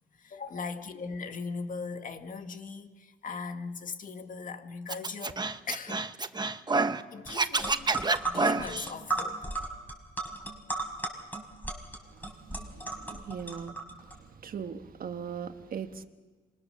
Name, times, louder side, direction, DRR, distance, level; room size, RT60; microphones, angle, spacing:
voice 1, 0.2-6.1 7.1-9.5, left 4 dB, 55° left, 2.0 m, -39 dB
Scratching (performance technique), 4.9-7.0 7.3-8.9, right 3 dB, 25° right, 1.1 m, -28 dB
sound 1, 7.3-7.4 7.6-14.1, right 3 dB, 10° left, 5.5 m, -35 dB
voice 2, 12.0-16.1, right 7 dB, 60° right, 1.4 m, -40 dB
26.5 x 22.0 x 6.9 m
cardioid pair, 75°, 16 cm